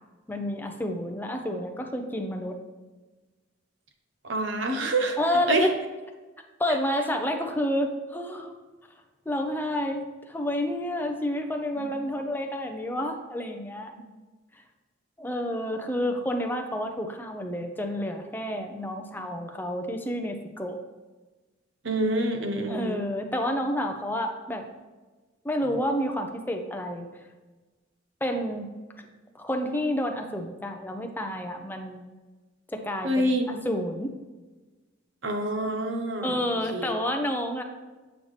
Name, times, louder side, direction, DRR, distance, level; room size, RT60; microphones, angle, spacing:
voice 1, 0.3-2.6 5.2-5.7 6.6-8.5 9.3-13.9 15.2-20.8 22.7-24.7 25.4-27.1 28.2-28.7 29.0-29.1 29.3-32.0 32.7-34.1 36.2-37.6, left 1 dB, 10° left, 4 dB, 0.7 m, -29 dB
voice 2, 4.2-5.2 5.5-5.7 11.7-11.9 14.0-14.1 21.8-23.0 33.0-33.6 35.2-36.4 36.7-36.9, right 1 dB, 80° right, 4 dB, 1.0 m, -26 dB
8.5 x 5.7 x 3.2 m, 1.3 s
head